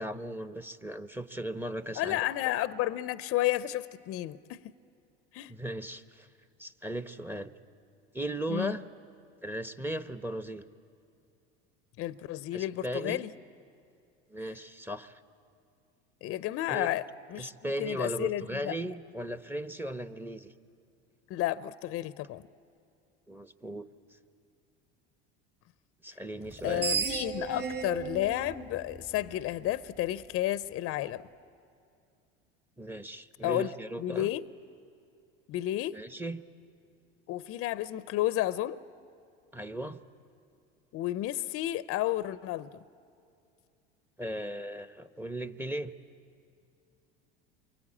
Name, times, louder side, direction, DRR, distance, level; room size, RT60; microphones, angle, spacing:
voice 1, 0.0-2.2 5.5-6.3 6.6-7.5 8.1-8.8 9.4-10.6 12.5-13.2 14.3-15.2 16.7-16.9 17.4-20.5 23.3-23.9 26.0-26.8 32.8-34.3 35.9-36.4 39.5-40.0 44.2-45.9, right 1 dB, 5° right, 0.9 m, -37 dB
voice 2, 2.0-4.6 5.3-5.5 8.5-8.8 12.0-13.3 16.2-17.0 17.3-18.9 21.3-22.4 26.6-31.2 33.4-33.7 34.0-34.4 35.5-36.0 37.3-38.8 40.9-42.7, left 14 dB, 50° left, 0.6 m, -32 dB
Screech, 26.5-29.7, right 5 dB, 35° right, 2.7 m, -35 dB
28.5 x 23.0 x 8.6 m
supercardioid pair, 95°, 30 cm